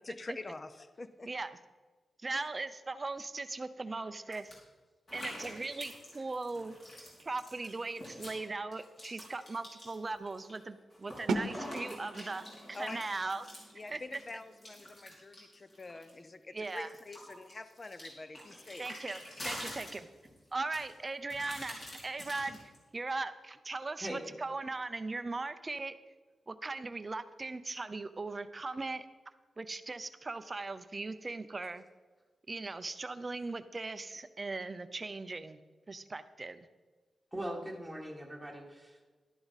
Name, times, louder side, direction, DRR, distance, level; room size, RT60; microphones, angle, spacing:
voice 1, 0.0-1.3 2.3-2.4 12.7-13.0 13.7-18.9, left 2 dB, 25° left, 11 dB, 0.5 m, -46 dB
voice 2, 2.2-4.6 5.1-6.7 7.2-13.5 13.9-14.0 16.5-16.9 18.8-20.1 20.5-22.6 22.9-26.0 26.5-29.1 29.6-31.8 32.5-35.6 35.9-36.7, right 3 dB, 25° right, 12 dB, 0.5 m, -39 dB
sound 1, 4.3-4.5 5.1-8.4 8.7-10.6 10.9-16.2 16.6-20.4 20.7-22.8, equal, 40° left, 4.1 m, -46 dB
sound 2, 11.3-17.0, right 3 dB, 70° right, 0.9 m, -41 dB
voice 3, 37.3-39.1, right 1 dB, ahead, -2 dB, 1.7 m, -41 dB
12.0 x 10.5 x 4.1 m, 1.3 s
wide cardioid pair, 170°, 0 cm